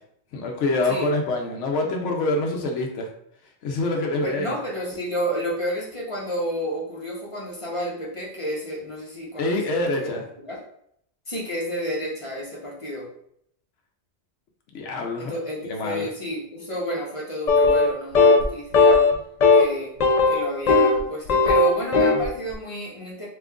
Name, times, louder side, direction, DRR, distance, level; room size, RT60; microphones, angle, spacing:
voice 1, 0.3-3.1 3.6-4.5 9.4-10.2 14.7-15.3 15.6-16.1, left 2 dB, 85° left, 1 dB, 1.0 m, -25 dB
voice 2, 4.2-10.1 10.4-10.6 11.3-13.1 15.2-19.0 19.5-19.9 20.3-23.3, equal, 30° left, -5 dB, 0.8 m, -31 dB
sound 1, 17.5-17.9 18.2-18.4 18.7-19.1 19.4-19.6 20.0-21.0 21.3-22.3, left 3 dB, 60° left, 0.4 m, -16 dB
2.9 x 2.4 x 3.5 m, 0.70 s
omnidirectional pair, 1.2 m